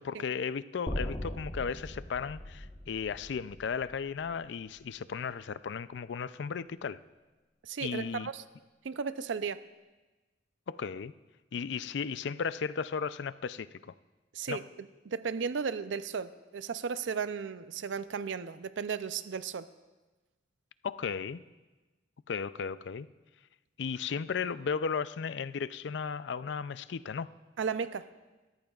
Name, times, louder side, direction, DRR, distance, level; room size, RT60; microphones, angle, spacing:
voice 1, 0.0-7.0 7.8-8.3 10.7-11.1 11.5-13.9 14.5-14.6 20.8-21.4 22.3-23.1 23.8-27.3, left 6 dB, 70° left, 15 dB, 0.4 m, -35 dB
sound 1, 0.9-5.0, left 1 dB, 30° left, 1.1 m, -40 dB
voice 2, 7.6-8.4 8.8-9.6 14.3-14.6 15.1-19.7 27.6-28.1, right 6 dB, 85° right, 13 dB, 0.5 m, -35 dB
25.0 x 14.0 x 2.4 m, 1.2 s
head